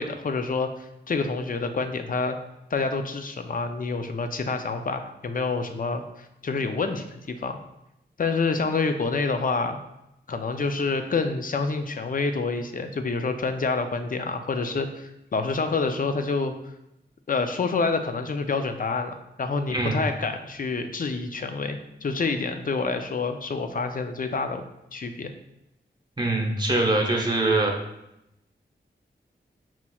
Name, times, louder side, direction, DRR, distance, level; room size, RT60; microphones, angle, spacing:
voice 1, 0.0-2.4 2.7-7.6 8.2-9.8 10.3-16.7 17.3-24.6 24.9-25.3, left 4 dB, 45° left, 7 dB, 0.4 m, -27 dB
voice 2, 19.7-20.0 26.2-27.7, right 2 dB, 25° right, 0 dB, 0.9 m, -23 dB
5.5 x 3.0 x 2.3 m, 0.85 s
cardioid pair, 55°, 19 cm